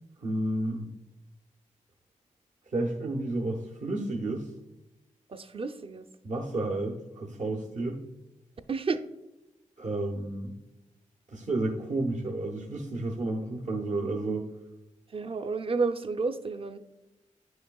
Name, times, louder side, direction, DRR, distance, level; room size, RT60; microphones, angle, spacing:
voice 1, 0.2-0.9 2.7-4.5 6.2-8.0 9.8-10.6 11.3-14.5, right 2 dB, 70° right, -1 dB, 0.9 m, -31 dB
voice 2, 5.3-6.1 8.7-9.0 15.1-16.8, right 4 dB, 45° right, 9 dB, 0.5 m, -31 dB
9.4 x 6.4 x 2.3 m, 0.98 s
cardioid pair, 55°, 13 cm